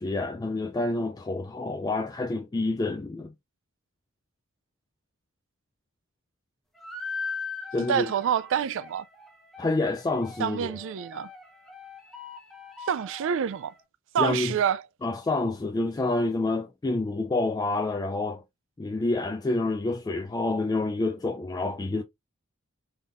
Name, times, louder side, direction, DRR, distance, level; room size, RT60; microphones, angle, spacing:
voice 1, 0.0-3.3 7.7-8.1 9.6-10.8 14.2-14.5 15.0-18.4 18.8-22.0, left 2 dB, 20° left, 0.3 m, -28 dB
sound 1, 6.7-13.8, left 5 dB, ahead, 0.8 m, -40 dB
voice 2, 7.9-9.0 10.4-11.3 12.9-13.7 14.1-14.8, right 8 dB, 60° right, 0.3 m, -27 dB
3.8 x 3.5 x 2.4 m
head